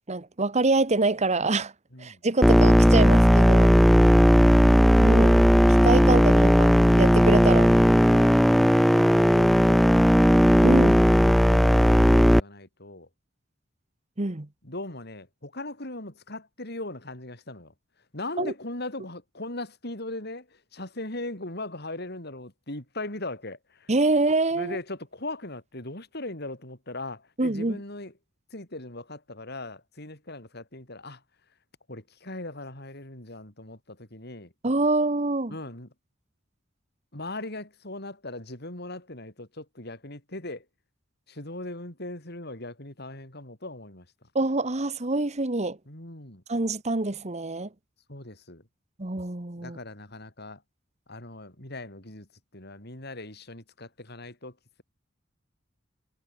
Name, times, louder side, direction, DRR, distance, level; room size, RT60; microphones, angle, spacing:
voice 1, 0.1-1.7 2.0-3.7 5.0-5.4 5.8-6.7 7.0-7.7 10.6-11.0 14.2-14.5 18.4-18.5 23.9-24.8 27.4-27.8 34.6-35.5 44.3-45.8 46.5-47.7 49.0-49.8, right 2 dB, 35° right, 1.3 m, -25 dB
sound 1, 2.4-12.4, equal, ahead, 0.3 m, -17 dB
voice 2, 10.9-13.1 14.6-17.7 18.1-23.9 24.5-28.1 28.5-31.2 31.9-34.5 35.5-35.9 37.1-40.7 41.3-44.1 45.9-46.4 48.1-48.6 49.6-50.6 51.1-54.8, left 2 dB, 60° left, 5.8 m, -39 dB
head